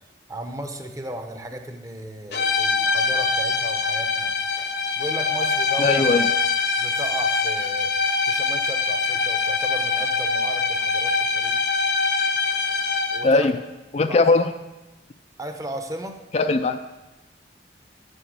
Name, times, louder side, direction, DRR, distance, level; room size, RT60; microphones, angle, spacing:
voice 1, 0.3-4.3 5.0-6.1 6.8-7.9 8.2-11.6 13.1-13.5 14.0-14.2 15.4-16.2, right 1 dB, 20° right, 6 dB, 0.8 m, -35 dB
sound 1, 2.3-13.4, left 4 dB, 60° left, 0.9 m, -23 dB
voice 2, 5.8-6.3 13.2-13.6 13.9-14.5 16.3-16.8, left 3 dB, 35° left, 8 dB, 0.4 m, -19 dB
9.9 x 5.5 x 8.1 m, 1.0 s
head